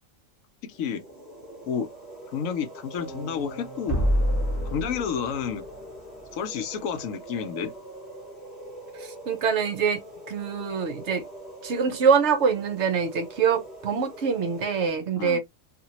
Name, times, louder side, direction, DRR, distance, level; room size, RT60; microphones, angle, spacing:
voice 1, 0.6-1.0 1.6-1.9 2.3-4.0 4.7-5.6 6.3-7.7 15.2-15.4, left 7 dB, 75° left, 1.0 m, -30 dB
sound 1, 0.7-14.9, right 1 dB, 30° left, 1.1 m, -43 dB
sound 2, 3.0-6.2, equal, 10° left, 1.3 m, -28 dB
voice 2, 9.0-10.0 10.3-11.2 11.6-15.4, right 6 dB, 60° right, 1.0 m, -24 dB
2.8 x 2.6 x 2.8 m
omnidirectional pair, 1.4 m